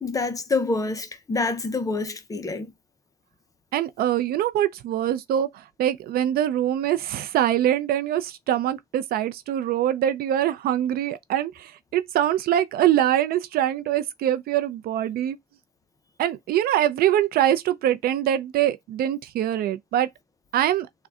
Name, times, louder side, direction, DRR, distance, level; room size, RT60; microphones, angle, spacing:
voice 1, 0.0-2.7, left 3 dB, 20° left, 0.5 m, -27 dB
voice 2, 3.7-15.4 16.2-20.1 20.5-20.9, right 11 dB, 65° right, 0.4 m, -23 dB
3.6 x 2.2 x 2.3 m
cardioid pair, 110°, 17 cm